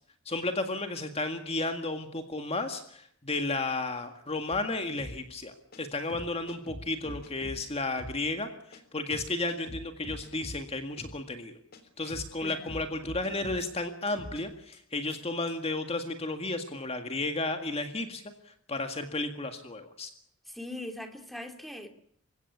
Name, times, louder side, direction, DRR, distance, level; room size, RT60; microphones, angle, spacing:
voice 1, 0.3-11.6 12.0-20.1, left 2 dB, 30° left, 6 dB, 1.9 m, -33 dB
sound 1, 4.5-4.6 5.0-5.2 5.7-5.8 6.1-7.6 8.0-8.2 8.7-8.8 9.1-10.6 11.0-11.2 11.7-11.8 12.1-13.7 14.1-14.4 14.7-14.8 15.1-15.2 15.5-15.6, left 1 dB, 45° left, 3.6 m, -43 dB
voice 2, 12.4-12.8 20.5-21.9, left 1 dB, ahead, 5 dB, 2.7 m, -41 dB
28.0 x 16.5 x 8.5 m, 0.67 s
head